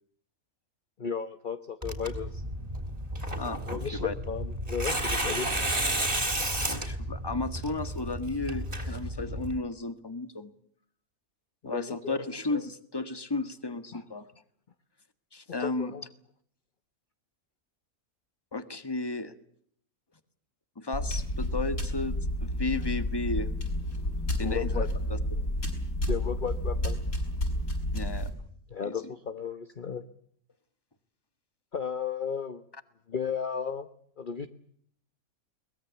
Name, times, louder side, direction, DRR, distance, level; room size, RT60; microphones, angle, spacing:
voice 1, 1.0-2.4 3.7-5.5 11.6-12.2 13.9-14.0 15.5-16.0 24.4-24.9 26.1-27.0 28.7-30.0 31.7-32.6 33.1-33.9 34.2-34.5, left 7 dB, 35° left, 9 dB, 1.2 m, -34 dB
Tearing, 1.8-9.6, right 1 dB, 25° right, 3.8 m, -32 dB
voice 2, 3.4-4.1 6.6-10.5 11.6-14.3 15.3-15.9 18.5-19.3 20.7-23.5 24.4-25.4 27.9-28.3 28.8-29.0, left 3 dB, 15° left, 11 dB, 1.5 m, -34 dB
sound 1, 20.9-28.3, left 1 dB, 70° left, 6.7 m, -30 dB
23.0 x 20.5 x 8.3 m, 0.64 s
omnidirectional pair, 1.5 m